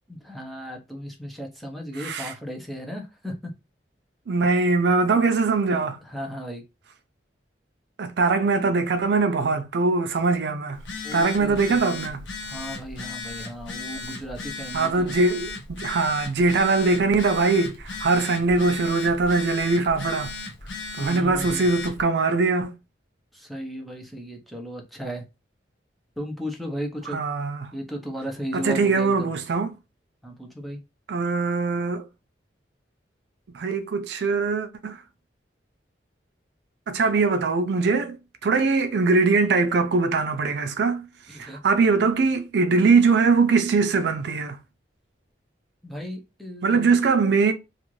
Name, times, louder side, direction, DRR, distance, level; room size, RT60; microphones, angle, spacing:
voice 1, 0.1-3.5 6.0-6.6 11.0-11.8 12.4-15.1 21.0-21.7 23.3-25.2 26.2-27.2 27.7-29.3 30.2-30.8 41.3-41.6 45.8-47.0, equal, ahead, 0.6 m, -35 dB
voice 2, 2.0-2.3 4.3-6.0 8.0-10.8 11.1-12.2 14.7-20.3 21.0-22.8 27.1-27.7 28.5-29.8 31.1-32.1 33.5-35.0 36.9-38.2 38.4-41.1 41.4-44.6 46.6-47.5, right 4 dB, 70° right, 0.4 m, -22 dB
Telephone, 10.7-22.0, left 3 dB, 90° left, 0.7 m, -36 dB
2.4 x 2.4 x 3.1 m
head